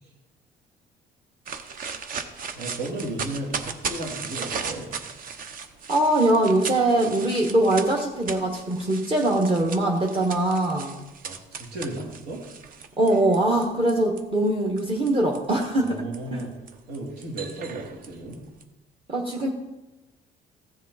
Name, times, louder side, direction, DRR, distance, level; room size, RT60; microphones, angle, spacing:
sound 1, 1.5-14.2 14.8-18.6, right 5 dB, 55° right, 0.9 m, -37 dB
voice 1, 2.5-4.9 11.2-12.5 15.7-16.5 16.9-18.4, right 1 dB, 75° right, -2 dB, 2.5 m, -34 dB
voice 2, 5.9-10.9 13.0-16.0 16.3-16.4 19.1-19.5, right 1 dB, 30° right, -1 dB, 1.3 m, -22 dB
14.5 x 7.5 x 4.1 m, 1.0 s
cardioid pair, 110°, 17 cm